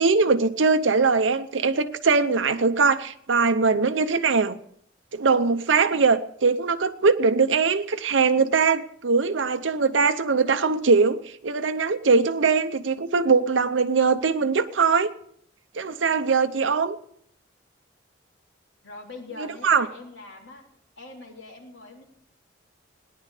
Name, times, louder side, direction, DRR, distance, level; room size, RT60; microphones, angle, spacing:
voice 1, 0.0-4.5 5.1-15.1 15.7-17.0 19.4-19.9, right 4 dB, 85° right, 0.7 m, -21 dB
voice 2, 18.8-20.7 21.0-22.0, left 2 dB, 75° left, 3.4 m, -42 dB
18.0 x 10.5 x 4.9 m
head